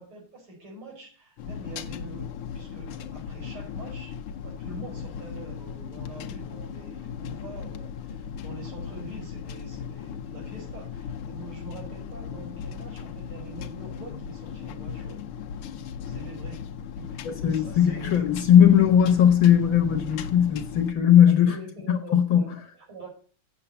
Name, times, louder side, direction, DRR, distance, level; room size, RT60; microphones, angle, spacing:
voice 1, 0.0-4.2 4.4-15.2 16.0-16.7 17.0-18.3 21.3-23.1, right 3 dB, 75° right, 6.1 m, -45 dB
sound 1, 1.4-20.9, left 7 dB, 85° left, 1.7 m, -37 dB
voice 2, 17.3-21.5 21.9-22.4, left 9 dB, 65° left, 1.8 m, -18 dB
7.6 x 7.3 x 6.9 m
omnidirectional pair, 2.4 m